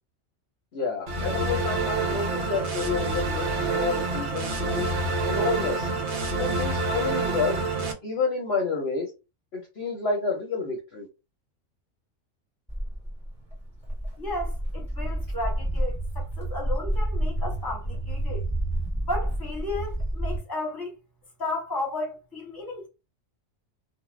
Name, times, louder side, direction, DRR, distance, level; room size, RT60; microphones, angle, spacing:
voice 1, 0.7-4.9 5.3-5.9 6.4-7.6 8.0-9.1 9.5-11.1, left 4 dB, 55° left, 0.8 m, -29 dB
sound 1, 1.1-7.9, right 3 dB, 65° right, 0.9 m, -27 dB
Walk footsteps, 12.7-20.4, right 1 dB, 5° right, 1.3 m, -29 dB
voice 2, 14.2-18.4 19.1-20.9 21.4-22.9, left 2 dB, 20° left, 1.2 m, -34 dB
2.4 x 2.3 x 3.1 m
omnidirectional pair, 1.4 m